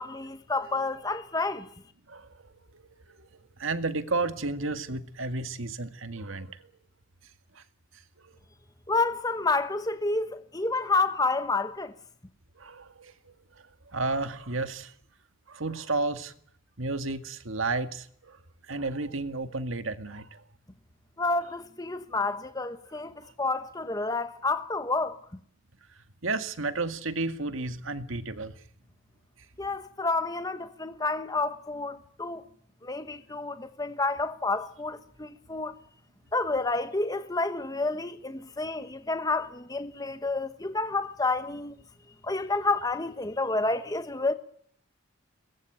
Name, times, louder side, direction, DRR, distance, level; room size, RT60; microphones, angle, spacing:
voice 1, 0.0-1.7 8.9-11.9 21.2-25.2 29.6-32.4 32.8-35.8 36.3-41.8 42.2-44.3, left 3 dB, 20° left, 1.1 m, -29 dB
voice 2, 2.1-3.3 3.6-6.6 7.6-7.7 8.2-8.4 12.6-13.7 13.9-14.9 15.5-16.3 16.8-18.4 18.7-20.4 23.2-23.3 26.2-28.5, right 3 dB, 75° right, 2.0 m, -32 dB
23.0 x 21.0 x 9.0 m
head